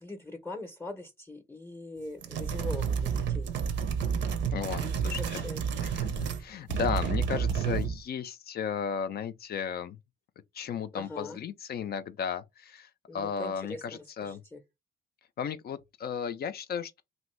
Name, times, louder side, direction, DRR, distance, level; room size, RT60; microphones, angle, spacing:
voice 1, 0.0-3.5 4.8-5.6 10.9-11.4 13.1-14.6, left 2 dB, 10° left, 0.7 m, -42 dB
sound 1, 2.2-6.4 6.7-8.0, right 7 dB, 70° right, 0.6 m, -30 dB
voice 2, 4.5-5.4 5.8-6.1 6.4-10.0 10.5-14.4 15.4-17.0, left 7 dB, 50° left, 0.4 m, -34 dB
2.9 x 2.6 x 3.1 m
cardioid pair, 90°, 20 cm